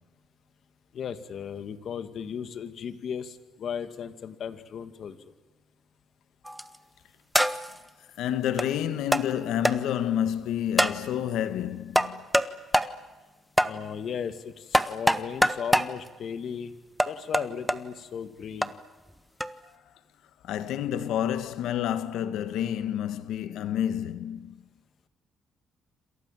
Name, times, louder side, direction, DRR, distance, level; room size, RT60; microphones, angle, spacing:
voice 1, 0.9-5.2 13.6-16.7 17.0-18.7, left 7 dB, 60° left, 2.3 m, -36 dB
sound 1, 6.4-6.8 7.3-7.8 8.6-8.7 9.1-9.3 9.6-9.8 10.8-11.0 12.0-12.5 12.7-12.9 13.6-13.7 14.7-15.9 17.0-17.8 18.6-18.7 19.4-19.5, equal, ahead, 1.4 m, -23 dB
voice 2, 8.2-12.2 20.4-24.6, left 10 dB, 85° left, 1.5 m, -29 dB
28.0 x 28.0 x 7.6 m
cardioid pair, 90°, 0 cm